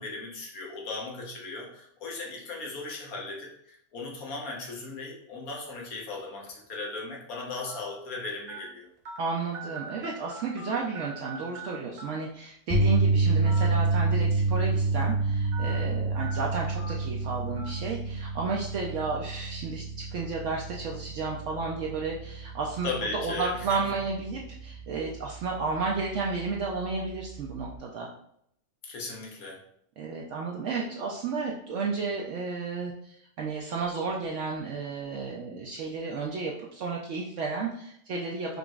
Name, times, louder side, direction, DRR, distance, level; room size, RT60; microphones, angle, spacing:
voice 1, 0.0-8.9 22.8-23.8 28.8-29.6, left 3 dB, 85° left, -2 dB, 1.4 m, -37 dB
sound 1, 5.5-5.7 6.5-6.6 7.7-7.8 8.5-8.6 9.0-9.2 9.5-10.7 10.9-11.7 12.0-12.1 13.4-13.7 14.0-14.1 15.5-15.7 16.2-16.3 16.8-16.9 17.6-17.7, right 4 dB, 85° right, 1.2 m, -41 dB
voice 2, 9.2-28.1 30.0-38.6, right 4 dB, 70° right, -2 dB, 0.8 m, -32 dB
sound 2, 12.7-25.0 25.3-25.6 27.7-27.8, right 3 dB, 25° right, 0.8 m, -28 dB
5.1 x 2.9 x 2.3 m, 0.71 s
omnidirectional pair, 1.4 m